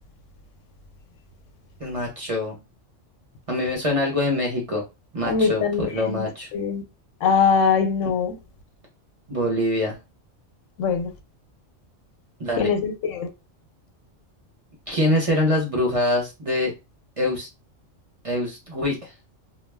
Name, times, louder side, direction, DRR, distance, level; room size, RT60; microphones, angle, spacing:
voice 1, 1.8-2.6 3.5-4.8 5.1-6.5 9.3-10.0 12.4-12.7 14.9-16.7 17.2-17.5 18.2-19.1, left 1 dB, 35° right, 0.7 m, -24 dB
voice 2, 5.2-6.2 6.5-6.8 7.2-8.4 10.8-11.1 12.6-13.3, left 6 dB, 85° left, 1.0 m, -22 dB
2.3 x 2.0 x 3.3 m
omnidirectional pair, 1.3 m